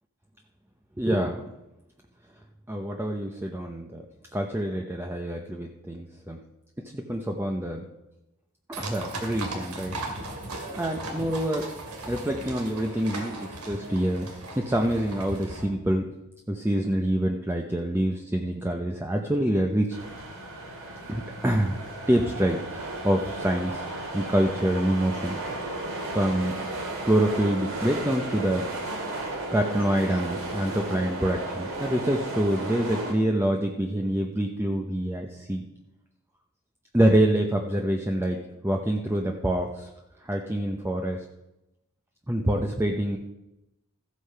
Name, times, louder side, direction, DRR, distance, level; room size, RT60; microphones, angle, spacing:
voice 1, 1.0-1.4 2.7-4.0 4.3-6.4 6.9-7.8 8.7-9.9 10.7-11.7 12.1-14.3 14.6-16.0 16.5-20.0 21.1-21.8 22.1-23.8 24.1-25.4 25.9-26.5 27.1-28.7 29.5-35.7 36.9-38.4 38.6-39.9 40.2-41.2 42.3-43.2, right 1 dB, 10° right, 2 dB, 0.8 m, -26 dB
sound 1, 8.7-15.7, right 2 dB, 90° right, 2.4 m, -37 dB
sound 2, 19.9-33.1, right 2 dB, 65° right, 2.9 m, -34 dB
14.5 x 8.3 x 5.6 m, 0.93 s
head